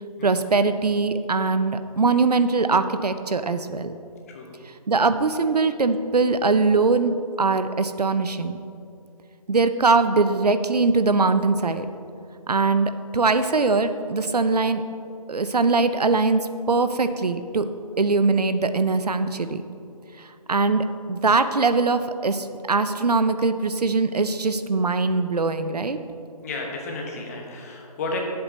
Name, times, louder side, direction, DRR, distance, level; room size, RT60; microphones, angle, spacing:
voice 1, 0.2-4.0 4.9-8.6 9.5-11.9 12.5-14.8 15.3-17.7 18.0-19.6 20.5-26.0, right 3 dB, 90° right, 11 dB, 0.6 m, -22 dB
voice 2, 26.4-28.2, left 3 dB, 25° left, 1 dB, 1.1 m, -32 dB
9.7 x 7.8 x 4.1 m, 2.5 s
figure-of-eight pair, 155°, 20 cm